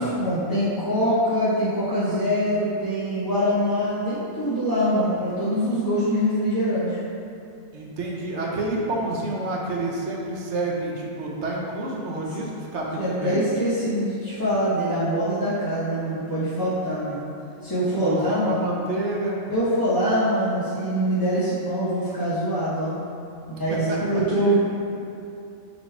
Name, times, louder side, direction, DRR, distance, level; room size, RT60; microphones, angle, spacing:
voice 1, 0.0-7.0 13.0-17.2 17.6-18.6 19.5-22.9 23.5-24.6, equal, 25° left, -12 dB, 0.5 m, -24 dB
voice 2, 7.7-13.4 18.0-19.4 23.7-24.0 24.4-24.5, right 2 dB, 60° right, -2 dB, 0.9 m, -29 dB
4.1 x 3.0 x 4.3 m, 2.7 s
omnidirectional pair, 1.5 m